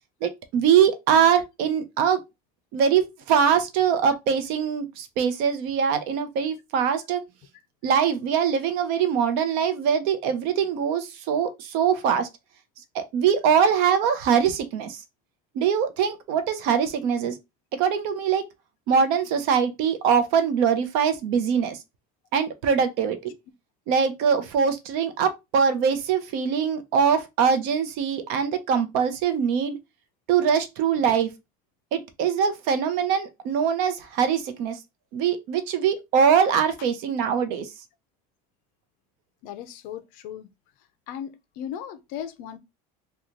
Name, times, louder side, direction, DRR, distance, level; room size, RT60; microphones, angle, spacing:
voice 1, 0.2-2.2 2.7-7.2 7.8-12.3 12.9-15.0 15.5-17.4 17.7-18.4 18.9-21.8 22.3-23.3 23.9-29.8 30.3-31.3 31.9-34.8 35.1-37.7, right 7 dB, 60° right, 0.7 m, -23 dB
voice 2, 39.4-40.5 41.1-42.6, left 9 dB, 55° left, 0.5 m, -37 dB
3.0 x 2.3 x 3.7 m
cardioid pair, 170°, 17 cm